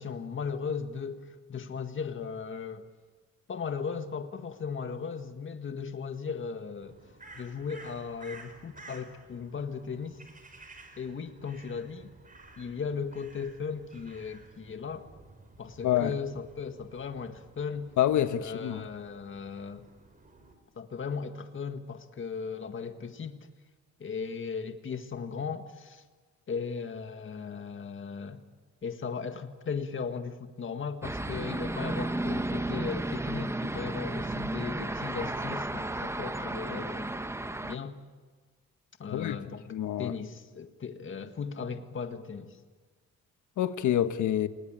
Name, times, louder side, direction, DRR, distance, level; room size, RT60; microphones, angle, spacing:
voice 1, 0.0-2.9 3.5-7.0 7.4-10.2 11.0-12.1 12.6-15.1 15.6-17.9 18.4-19.9 20.8-23.5 24.0-26.0 26.5-28.4 28.8-37.1 37.6-38.0 39.0-39.7 40.0-42.6, left 5 dB, 40° left, 1.8 m, -37 dB
Crow, 6.8-20.5, right 2 dB, 25° right, 5.3 m, -53 dB
voice 2, 15.8-16.1 18.0-18.8 39.1-39.4 39.7-40.1 43.6-44.5, left 11 dB, 75° left, 1.4 m, -27 dB
sound 1, 31.0-37.8, right 1 dB, 10° right, 1.0 m, -33 dB
28.0 x 19.5 x 9.0 m
cardioid pair, 90°, 30 cm